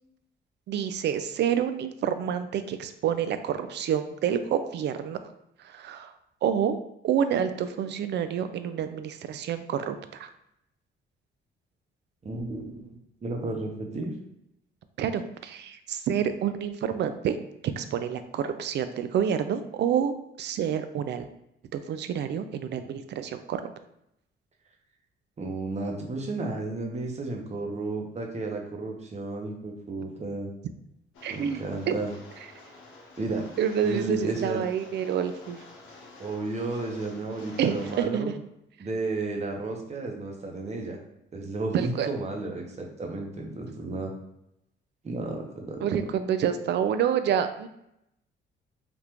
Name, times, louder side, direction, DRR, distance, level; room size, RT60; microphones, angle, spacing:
voice 1, 0.7-5.2 5.6-6.1 6.4-10.3 15.0-17.4 17.8-21.3 21.7-23.6 31.2-31.6 31.9-32.0 33.6-35.6 37.6-38.3 41.7-42.1 45.8-47.7, right 8 dB, 60° right, 10 dB, 0.4 m, -28 dB
voice 2, 12.2-12.9 13.2-14.1 25.4-30.5 31.3-32.1 33.2-33.5 33.8-34.6 36.2-38.3 38.8-41.0 41.3-44.1 45.0-45.9, right 2 dB, 35° right, 1 dB, 0.8 m, -33 dB
Rain, 31.1-38.0, left 2 dB, 90° left, 0.9 m, -49 dB
3.5 x 2.4 x 2.9 m, 0.80 s
cardioid pair, 90°, 20 cm